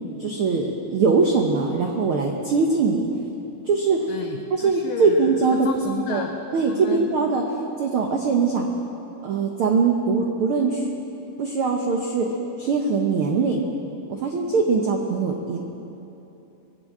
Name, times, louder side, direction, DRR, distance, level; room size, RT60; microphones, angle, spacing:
voice 1, 0.2-3.1 3.6-4.1 4.5-6.2 6.5-7.4 7.8-8.6 9.2-10.9 11.4-12.3 12.6-13.6 14.1-15.6, right 4 dB, 80° right, 1 dB, 1.2 m, -22 dB
voice 2, 4.1-7.2, left 7 dB, 90° left, 4 dB, 1.4 m, -33 dB
21.5 x 7.3 x 8.6 m, 2.9 s
omnidirectional pair, 3.8 m